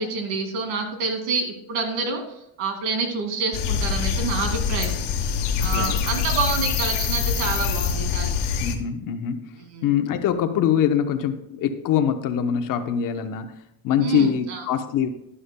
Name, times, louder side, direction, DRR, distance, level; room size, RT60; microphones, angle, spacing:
voice 1, 0.0-2.2 2.6-4.9 5.6-8.3 9.7-9.9 14.0-14.6, right 4 dB, 85° right, 4 dB, 2.4 m, -27 dB
sound 1, 3.5-8.7, left 6 dB, 65° left, 1.3 m, -24 dB
voice 2, 5.6-6.0 8.6-9.5 9.8-13.6 13.8-15.1, left 9 dB, 45° left, 8 dB, 0.8 m, -23 dB
12.0 x 11.0 x 2.2 m, 0.77 s
cardioid pair, 175°, 45 cm